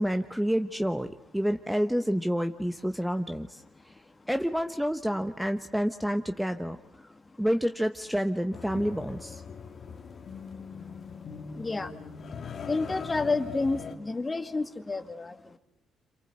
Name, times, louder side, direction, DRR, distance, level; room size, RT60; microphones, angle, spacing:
voice 1, 0.0-3.9 4.3-6.8 7.4-9.4, equal, 5° right, 7 dB, 1.1 m, -29 dB
sound 1, 8.5-14.0, left 6 dB, 50° left, 1.9 m, -41 dB
voice 2, 11.5-11.9 12.7-15.6, left 3 dB, 25° left, 8 dB, 2.2 m, -30 dB
27.5 x 27.0 x 8.0 m, 0.79 s
cardioid pair, 90°, 0 cm